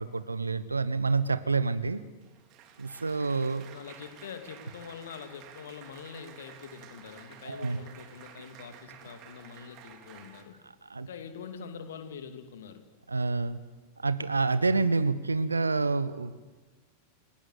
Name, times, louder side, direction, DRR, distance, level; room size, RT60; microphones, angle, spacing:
voice 1, 0.0-2.0 2.8-3.7 7.4-7.8 10.9-11.1 13.1-13.6 14.0-16.4, right 3 dB, 80° right, 15 dB, 1.1 m, -28 dB
Applause, 2.0-10.4, right 8 dB, 40° right, 3.1 m, -52 dB
voice 2, 3.7-10.6 11.0-12.8, left 7 dB, 60° left, 8 dB, 2.5 m, -44 dB
29.5 x 18.0 x 8.1 m, 1.2 s
figure-of-eight pair, 90°, 0 cm